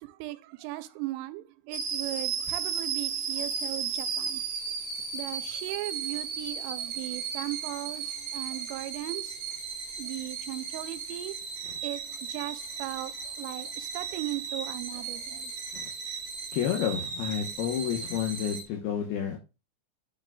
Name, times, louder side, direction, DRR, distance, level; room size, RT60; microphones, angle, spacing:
voice 1, 0.0-4.4 5.1-9.4 10.0-11.4 11.8-15.5, right 17 dB, 85° right, 3.2 m, -38 dB
sound 1, 1.7-18.6, right 6 dB, 60° right, 1.8 m, -35 dB
voice 2, 16.5-19.4, left 9 dB, 75° left, 2.3 m, -30 dB
9.1 x 6.6 x 2.3 m
omnidirectional pair, 5.8 m